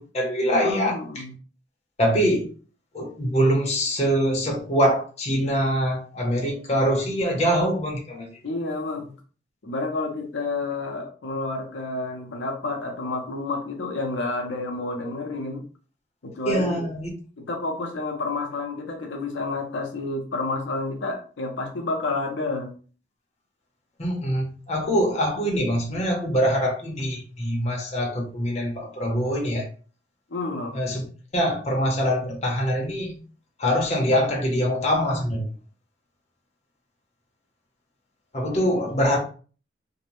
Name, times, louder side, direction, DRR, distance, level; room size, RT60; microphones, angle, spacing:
voice 1, 0.0-1.0 2.0-2.5 2.9-8.3 16.5-17.1 24.0-29.7 30.7-31.0 31.3-33.2 33.6-35.5 38.3-39.2, equal, 35° left, 0.6 m, -24 dB
voice 2, 0.6-1.3 8.4-9.1 9.6-15.6 16.2-16.9 17.4-22.7 30.3-30.8, left 3 dB, 80° left, 0.6 m, -30 dB
2.6 x 2.0 x 2.9 m
head